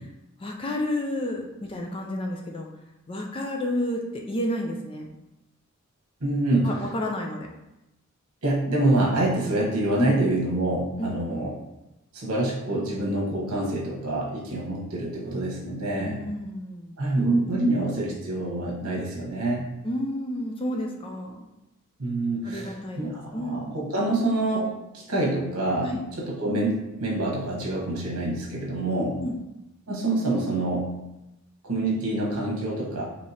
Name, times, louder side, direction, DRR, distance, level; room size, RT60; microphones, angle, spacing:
voice 1, 0.4-2.7 3.1-5.1 6.6-7.5 10.0-10.2 11.0-11.4 16.0-17.0 17.5-17.6 19.8-21.5 22.4-23.8 25.8-26.0 28.9-29.4, left 1 dB, 25° left, 1 dB, 0.4 m, -31 dB
voice 2, 6.2-6.7 8.4-11.5 12.1-16.2 17.0-19.6 22.0-25.9 26.2-29.2 29.9-30.9 31.6-33.0, right 2 dB, 75° right, -3 dB, 1.2 m, -26 dB
4.6 x 3.0 x 2.8 m, 0.95 s
head